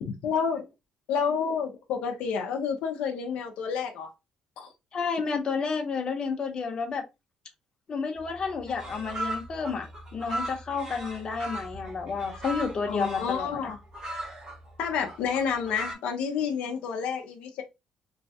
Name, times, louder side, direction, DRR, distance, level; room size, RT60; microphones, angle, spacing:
voice 1, 0.0-0.7 1.1-4.1 4.6-4.7 12.9-13.8 14.8-17.6, left 6 dB, 85° left, 0.5 m, -29 dB
voice 2, 4.9-7.0 7.9-13.6, left 5 dB, 40° left, 0.8 m, -31 dB
sound 1, 8.2-8.3 8.5-15.9, right 1 dB, 35° right, 1.7 m, -38 dB
3.1 x 2.2 x 2.7 m
cardioid pair, 105°, 2 cm